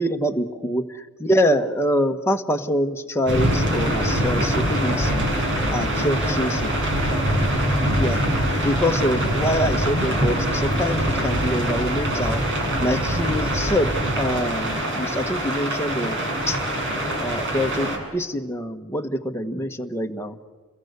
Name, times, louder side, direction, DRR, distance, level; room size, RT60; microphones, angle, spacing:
voice 1, 0.0-5.3 5.7-6.8 8.0-12.4 12.8-13.9 14.2-16.6 17.2-20.4, equal, 10° left, 4 dB, 1.4 m, -25 dB
sound 1, 3.3-18.0, equal, 60° right, 7.1 m, -23 dB
30.0 x 22.0 x 8.2 m, 1.4 s
head